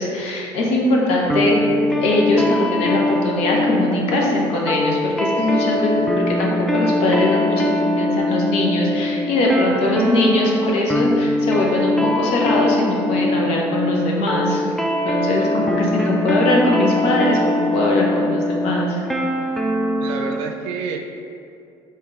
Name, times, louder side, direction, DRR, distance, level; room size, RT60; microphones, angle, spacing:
voice 1, 0.0-1.6 1.9-14.6 15.0-19.0, left 2 dB, 65° left, -1 dB, 0.9 m, -21 dB
sound 1, 1.3-20.4, left 1 dB, ahead, 0.4 m, -22 dB
voice 2, 20.0-21.0, right 5 dB, 90° right, 4 dB, 0.5 m, -29 dB
4.8 x 3.0 x 3.6 m, 2.5 s
cardioid pair, 140°, 11 cm